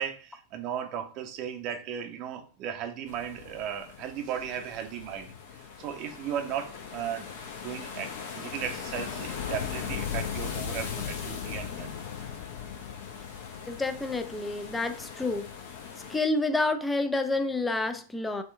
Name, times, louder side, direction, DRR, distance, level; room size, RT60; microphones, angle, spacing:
voice 1, 0.0-5.3 5.8-7.3 7.6-11.9, right 9 dB, 40° right, 0.6 m, -36 dB
sound 1, 3.1-16.2, left 7 dB, 50° left, 0.7 m, -38 dB
voice 2, 13.7-15.5 16.1-18.4, left 2 dB, 10° left, 0.4 m, -29 dB
4.2 x 2.2 x 3.2 m
figure-of-eight pair, 90°, 0 cm